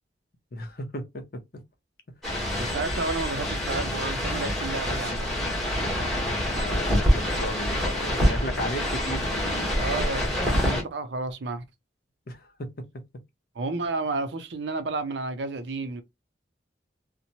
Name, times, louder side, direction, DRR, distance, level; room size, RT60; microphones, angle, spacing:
voice 1, 0.5-1.4 6.4-9.9 10.2-10.7 12.3-12.7, left 1 dB, 55° left, 0.6 m, -36 dB
sound 1, 2.2-10.8, equal, ahead, 1.0 m, -26 dB
voice 2, 2.6-5.3 8.8-8.9 9.7-11.6 13.6-16.0, right 3 dB, 75° right, 0.5 m, -31 dB
2.8 x 2.1 x 2.7 m
head